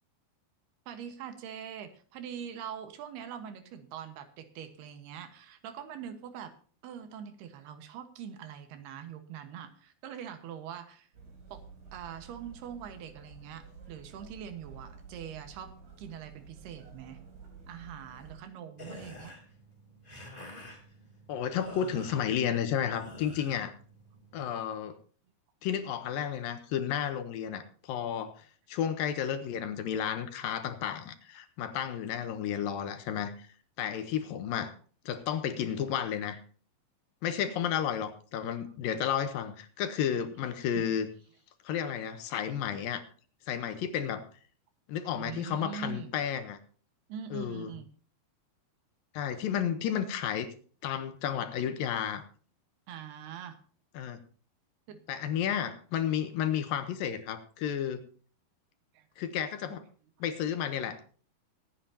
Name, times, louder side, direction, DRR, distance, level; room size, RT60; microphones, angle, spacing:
voice 1, 0.9-6.5 6.8-11.1 11.5-11.6 11.9-15.7 16.0-17.2 17.7-19.3 40.8-40.9 45.1-46.1 47.1-47.9 52.9-53.6 54.9-55.0 58.9-59.1, right 8 dB, 85° right, 8 dB, 3.4 m, -43 dB
sound 1, 11.1-18.4, right 5 dB, 50° right, 5.6 m, -51 dB
sound 2, 18.7-24.6, left 1 dB, 15° left, 2.8 m, -49 dB
voice 2, 21.3-23.7 24.3-25.0 25.6-33.5 33.8-34.7 35.1-36.4 37.2-41.1 41.6-43.0 43.5-44.3 44.9-46.6 47.3-47.7 49.1-50.5 50.8-52.2 54.0-54.2 55.1-58.0 59.2-59.8 60.2-61.0, left 9 dB, 75° left, 10 dB, 2.5 m, -32 dB
23.5 x 9.2 x 2.8 m, 0.42 s
omnidirectional pair, 4.5 m